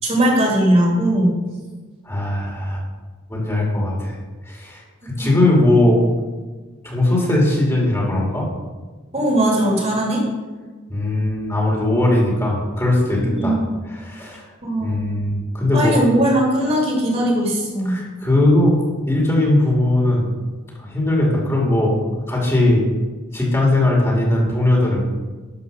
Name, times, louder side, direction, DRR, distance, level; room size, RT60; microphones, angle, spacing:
voice 1, 0.0-1.4 5.2-5.3 9.1-10.2 13.2-13.7 14.6-14.9 15.7-18.0, right 1 dB, 30° right, -1 dB, 2.7 m, -19 dB
voice 2, 2.0-2.8 3.3-4.2 4.5-6.1 6.8-8.5 10.9-13.6 13.9-14.5 14.8-16.0 17.8-18.8 19.1-20.3 20.8-22.9 23.3-25.0, left 1 dB, 15° left, -3 dB, 2.4 m, -19 dB
11.5 x 5.2 x 6.7 m, 1.3 s
head